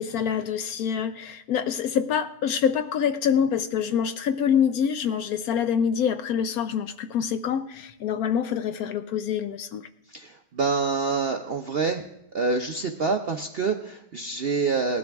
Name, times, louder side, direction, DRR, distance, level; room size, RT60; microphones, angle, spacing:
voice 1, 0.0-9.9, left 8 dB, 70° left, 10 dB, 1.0 m, -26 dB
voice 2, 10.1-12.0 12.3-15.0, right 4 dB, 60° right, 4 dB, 0.6 m, -26 dB
19.0 x 12.0 x 3.5 m, 0.83 s
omnidirectional pair, 1.8 m